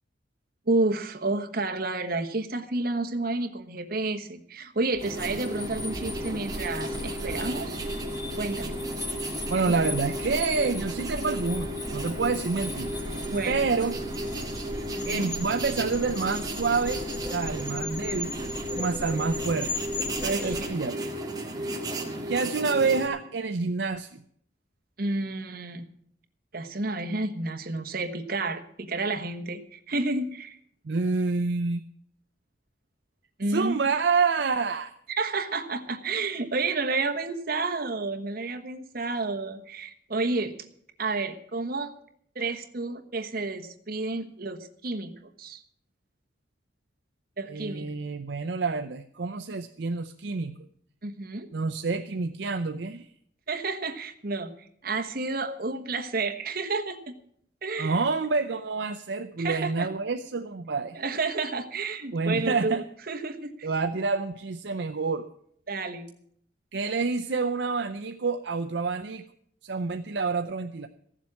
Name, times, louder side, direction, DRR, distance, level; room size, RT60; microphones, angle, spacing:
voice 1, 0.7-7.8 8.4-8.7 13.3-13.6 14.9-15.3 20.2-20.6 25.0-25.9 26.5-30.6 33.4-33.8 35.2-40.5 41.0-41.9 42.3-45.6 47.4-47.9 51.0-51.5 53.5-54.5 54.8-57.2 57.6-58.0 59.4-59.9 60.9-63.7 65.7-66.1, right 3 dB, 55° right, 6 dB, 1.2 m, -30 dB
sound 1, 4.9-20.6, left 2 dB, 25° left, 1.3 m, -38 dB
sound 2, 5.0-23.1, right 1 dB, 20° right, 1.8 m, -34 dB
voice 2, 9.5-14.0 15.1-18.4 18.7-19.7 20.4-21.0 22.3-24.2 30.8-31.8 33.5-34.9 47.5-50.5 51.5-53.1 57.8-61.0 62.1-62.8 63.6-65.3 66.7-69.2 69.6-70.9, right 4 dB, 70° right, 6 dB, 0.6 m, -28 dB
15.0 x 7.4 x 8.4 m, 0.65 s
head